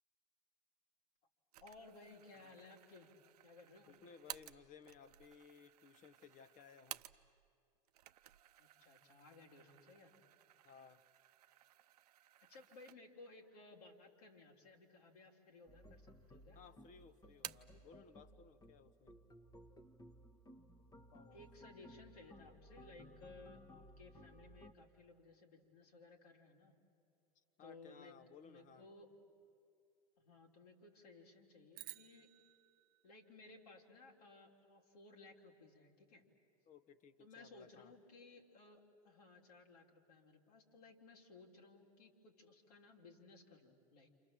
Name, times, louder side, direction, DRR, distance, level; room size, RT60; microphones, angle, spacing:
sound 1, 1.5-7.5 7.8-13.3 13.7-13.8 14.7-15.3 15.6-16.4 16.7-17.8, right 13 dB, 80° right, 0.6 m, -56 dB
voice 1, 1.6-3.1 3.4-4.0 8.6-10.1 12.5-16.6 21.3-26.8 27.6-28.2 28.4-29.1 30.2-32.3 33.0-36.2 37.2-44.1, left 3 dB, 80° left, -1 dB, 3.6 m, -60 dB
voice 2, 3.9-7.0 10.6-11.0 16.5-19.2 21.1-21.4 27.3-28.9 36.7-37.9, left 6 dB, 40° left, 13 dB, 1.3 m, -60 dB
sound 2, 15.7-24.7, equal, 20° left, 1.4 m, -60 dB
sound 3, 31.7-34.2, right 16 dB, 50° right, 0.8 m, -56 dB
28.5 x 27.5 x 7.5 m, 2.5 s
hypercardioid pair, 95°, 20 cm